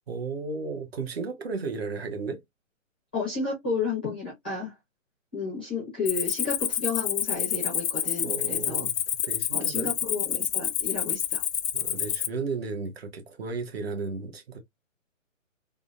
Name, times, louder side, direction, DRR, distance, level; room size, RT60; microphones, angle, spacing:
voice 1, 0.1-2.4 8.2-9.9 11.7-14.6, right 4 dB, 50° right, 0.9 m, -34 dB
voice 2, 3.1-4.7 5.3-8.9 9.5-11.4, left 4 dB, 10° left, 0.5 m, -32 dB
Cricket, 6.1-12.3, left 9 dB, 70° left, 0.6 m, -28 dB
3.6 x 2.1 x 2.3 m
hypercardioid pair, 160°, 40 cm